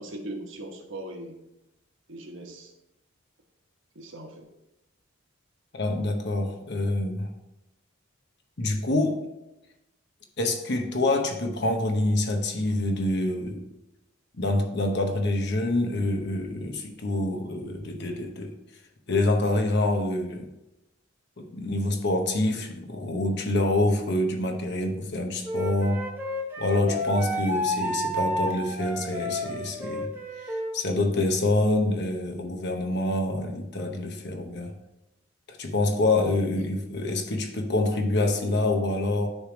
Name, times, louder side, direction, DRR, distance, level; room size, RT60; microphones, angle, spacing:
voice 1, 0.0-1.3 2.1-2.7 3.9-4.5, right 1 dB, 65° right, 3 dB, 1.1 m, -39 dB
voice 2, 5.7-7.3 8.6-9.2 10.4-13.6 14.4-18.5 19.1-20.5 21.4-26.0 26.6-30.1 30.4-34.7 35.5-39.3, left 2 dB, 55° left, 4 dB, 0.9 m, -26 dB
Wind instrument woodwind instrument, 25.4-30.7, equal, 10° right, 0.9 m, -31 dB
9.8 x 3.3 x 5.1 m, 0.93 s
head